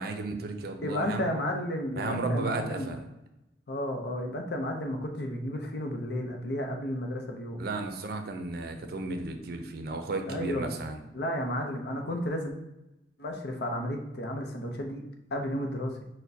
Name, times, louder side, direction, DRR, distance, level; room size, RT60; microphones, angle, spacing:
voice 1, 0.0-1.3 2.0-3.0 7.6-11.0, right 3 dB, 60° right, 6 dB, 0.5 m, -34 dB
voice 2, 0.8-3.0 3.7-7.6 10.3-10.8 11.1-12.5 13.2-15.0 15.3-15.9, equal, 65° left, 3 dB, 0.6 m, -32 dB
6.3 x 2.2 x 2.7 m, 0.94 s
head